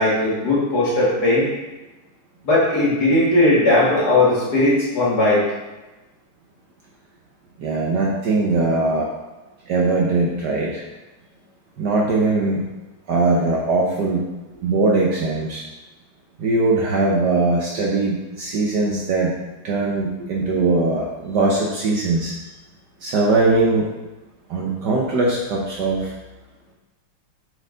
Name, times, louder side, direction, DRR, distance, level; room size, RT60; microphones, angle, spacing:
voice 1, 0.0-1.5 2.4-5.4, left 2 dB, 45° left, -7 dB, 2.2 m, -17 dB
voice 2, 7.6-9.1 9.7-10.8 11.8-12.7 13.1-14.3 14.6-15.6 16.4-19.4 19.6-22.3 23.0-23.9 24.5-26.1, right 3 dB, 65° right, -2 dB, 1.2 m, -20 dB
7.1 x 4.5 x 3.9 m, 1.1 s
omnidirectional pair, 2.4 m